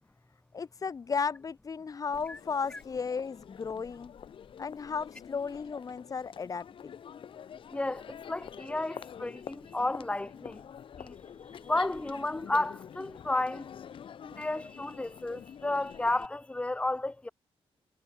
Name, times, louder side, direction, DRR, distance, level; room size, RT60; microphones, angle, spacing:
voice 1, 0.5-4.1 4.6-7.0, left 5 dB, 35° left, 4.5 m, -34 dB
Crowd, 2.1-16.3, left 8 dB, 60° left, 4.8 m, -47 dB
voice 2, 7.7-10.6 11.0-11.1 11.5-13.7 14.2-17.3, left 2 dB, 10° left, 2.9 m, -32 dB
wide cardioid pair, 170°, 10 cm